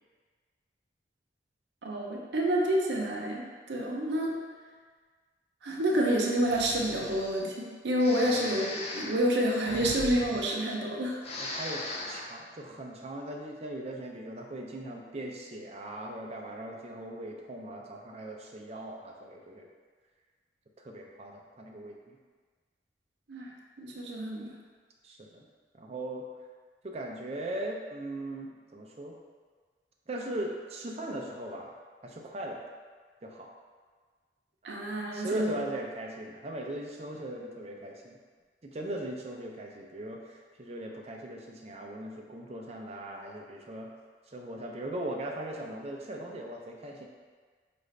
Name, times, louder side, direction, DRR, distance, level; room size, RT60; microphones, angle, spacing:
voice 1, 1.8-4.4 5.6-11.2 23.3-23.5 23.8-24.5 34.6-35.6, right 1 dB, 80° right, -1 dB, 0.6 m, -28 dB
Breathing, 6.4-7.4 8.0-10.9 11.2-12.3, left 2 dB, 35° left, 0.4 m, -39 dB
voice 2, 8.2-8.5 11.4-19.7 20.8-22.2 25.0-25.5 25.8-26.3 26.8-29.2 30.1-31.7 32.0-32.6 33.2-33.5 35.1-38.2 38.6-43.9 44.3-47.1, right 1 dB, 35° right, 0 dB, 0.4 m, -39 dB
4.8 x 2.5 x 3.2 m, 1.5 s
head